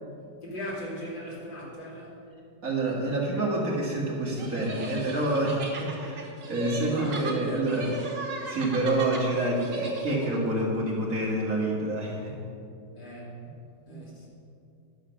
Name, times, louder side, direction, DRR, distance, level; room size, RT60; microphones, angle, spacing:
voice 1, 0.4-2.1 6.9-7.8 12.9-13.4 13.9-14.3, equal, 70° left, -6 dB, 3.3 m, -39 dB
voice 2, 2.6-7.9 8.5-12.4 13.9-14.0, right 1 dB, 45° right, -4 dB, 2.0 m, -28 dB
sound 1, 4.4-10.4, right 3 dB, 70° right, 2.1 m, -36 dB
10.5 x 6.6 x 6.3 m, 2.6 s
omnidirectional pair, 2.1 m